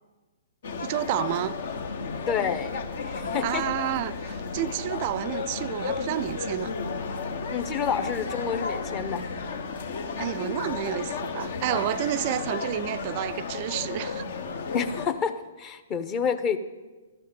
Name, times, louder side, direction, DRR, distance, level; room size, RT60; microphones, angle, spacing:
sound 1, 0.6-15.1, left 5 dB, 60° left, 1.0 m, -33 dB
voice 1, 0.8-1.6 3.4-6.7 10.2-14.3, right 13 dB, 45° right, 0.4 m, -30 dB
sound 2, 1.7-9.6, left 2 dB, 85° left, 0.6 m, -43 dB
voice 2, 2.3-3.6 7.5-9.2 14.7-16.6, left 7 dB, 30° left, 0.9 m, -29 dB
13.0 x 5.7 x 9.0 m
hypercardioid pair, 125°, 0 cm